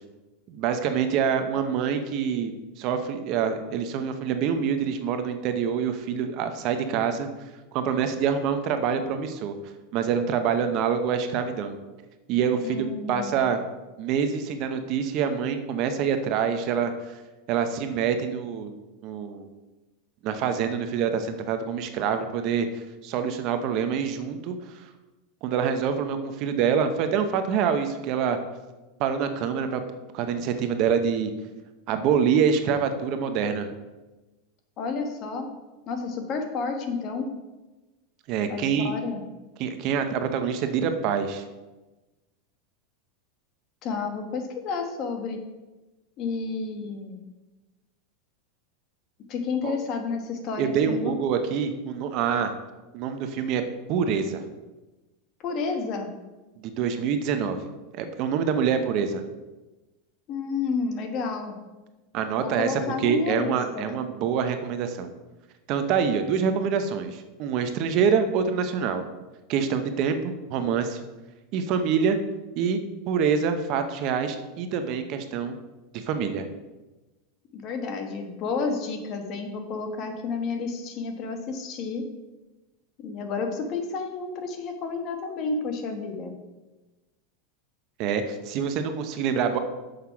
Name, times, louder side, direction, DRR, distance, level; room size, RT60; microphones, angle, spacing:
voice 1, 0.5-7.3 7.7-9.5 9.9-11.8 12.3-13.6 14.0-17.2 17.5-19.5 20.2-24.7 25.4-28.4 29.0-29.8 30.1-31.3 31.9-33.7 38.3-38.9 39.6-41.4 49.6-49.8 50.6-52.5 52.9-53.6 53.9-54.4 56.6-57.6 57.9-59.2 62.1-65.1 65.7-69.0 69.5-71.0 71.5-72.2 72.6-72.8 73.1-75.6 75.9-76.4 88.0-89.6, right 7 dB, 45° right, 8 dB, 0.7 m, -26 dB
voice 2, 12.6-13.5 34.8-35.5 35.9-37.3 38.5-39.2 43.8-45.4 46.2-47.2 49.3-51.2 55.4-56.1 60.3-61.5 62.3-64.0 77.5-82.0 83.0-86.3, left 4 dB, 35° left, 5 dB, 1.2 m, -31 dB
6.6 x 5.5 x 5.8 m, 1.1 s
supercardioid pair, 155°, 0 cm